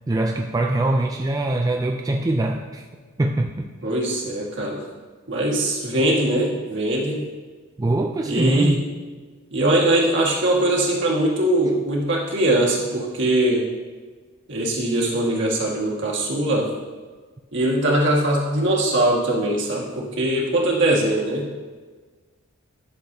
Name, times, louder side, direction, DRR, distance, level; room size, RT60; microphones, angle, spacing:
voice 1, 0.1-2.9 3.2-3.7 7.8-8.8, right 2 dB, 15° right, 2 dB, 0.3 m, -23 dB
voice 2, 3.8-4.8 5.3-7.2 8.2-8.8 9.5-13.7 14.5-16.7 17.5-21.5, right 1 dB, 55° right, -3 dB, 1.7 m, -21 dB
11.5 x 6.6 x 2.7 m, 1.4 s
head